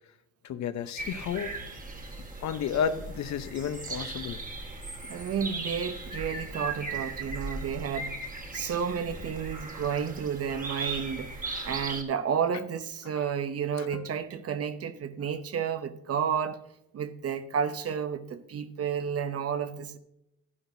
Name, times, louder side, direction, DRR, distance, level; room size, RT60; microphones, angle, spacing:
voice 1, 0.4-1.5 2.4-4.4 13.1-13.2 13.8-14.1, left 7 dB, 65° left, 0.8 m, -32 dB
sound 1, 1.0-12.0, right 3 dB, 30° right, 1.6 m, -38 dB
voice 2, 5.1-8.2 8.5-11.3 11.6-16.6 16.9-20.0, right 7 dB, 50° right, 0.8 m, -31 dB
11.5 x 11.0 x 2.7 m
cardioid pair, 90°, 30 cm